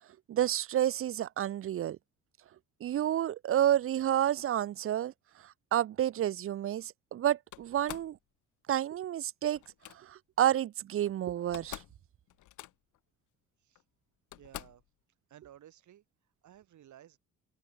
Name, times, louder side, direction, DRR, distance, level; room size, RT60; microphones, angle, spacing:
voice 1, 0.3-2.0 2.8-5.1 5.4-8.2 8.7-9.6 9.9-11.8, right 11 dB, 45° right, 0.5 m, -30 dB
Slam, 7.5-8.2 9.5-10.0 11.1-11.2 11.4-12.0 12.3-13.0 13.7-13.8 14.3-14.9, left 15 dB, 80° left, 1.6 m, -46 dB
voice 2, 14.3-14.8 15.3-16.0 16.4-17.2, right 11 dB, 70° right, 7.9 m, -56 dB
open air
cardioid pair, 90°, 30 cm